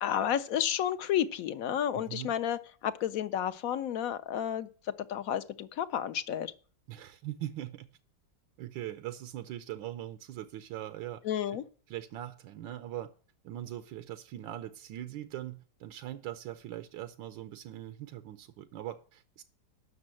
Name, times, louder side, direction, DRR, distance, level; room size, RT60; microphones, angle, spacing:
voice 1, 0.0-6.5 11.2-11.6, left 10 dB, 65° left, 0.8 m, -31 dB
voice 2, 1.9-2.3 6.9-7.9 8.6-11.2 11.9-13.1 13.4-19.4, right 13 dB, 90° right, 1.4 m, -41 dB
9.4 x 6.3 x 7.5 m
omnidirectional pair, 2.0 m